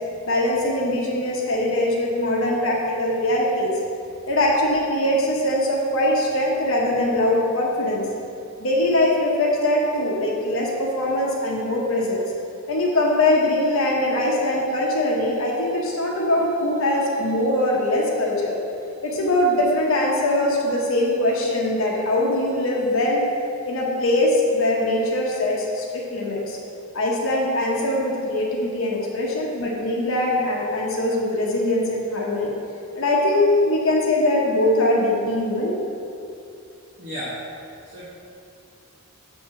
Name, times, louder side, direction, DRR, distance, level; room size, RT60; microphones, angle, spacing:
voice 1, 0.2-3.8 4.3-8.0 8.6-12.2 12.7-18.6 19.0-23.2 23.6-26.6 26.9-32.5 33.0-35.8, left 1 dB, 65° left, -3 dB, 1.1 m, -22 dB
voice 2, 37.0-37.4 37.9-38.1, equal, 35° right, -9 dB, 1.2 m, -32 dB
7.0 x 4.3 x 6.5 m, 2.7 s
head